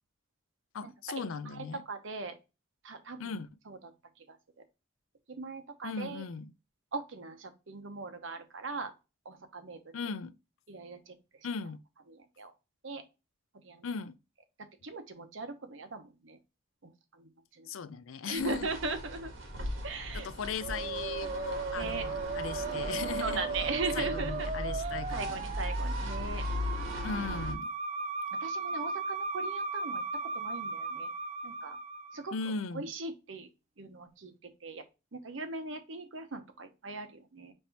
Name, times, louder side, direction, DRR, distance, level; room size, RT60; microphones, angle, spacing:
voice 1, 0.7-1.8 3.2-3.5 5.8-6.5 9.9-10.3 11.4-11.8 13.8-14.2 17.7-18.7 20.1-23.4 24.0-25.4 27.0-27.7 32.3-32.9, left 5 dB, 85° left, 0.5 m, -38 dB
voice 2, 1.6-2.4 2.8-3.4 3.7-3.8 4.3-4.4 5.3-6.2 6.9-8.9 9.2-9.8 10.7-11.1 12.1-12.5 12.8-13.0 13.6-13.9 14.8-16.4 16.8-16.9 17.2-17.3 17.6-17.7 18.2-19.3 19.8-20.3 21.8-22.1 23.2-24.5 24.8-26.4 26.8-27.0 28.4-30.0 30.3-31.1 31.4-31.8 32.1-32.3 32.7-33.5 33.8-34.8 35.1-37.5, right 3 dB, 70° right, 0.9 m, -39 dB
sound 1, 18.4-27.5, equal, 85° right, 1.6 m, -38 dB
Musical instrument, 20.6-32.4, right 4 dB, 35° right, 0.4 m, -37 dB
5.4 x 3.3 x 2.9 m
head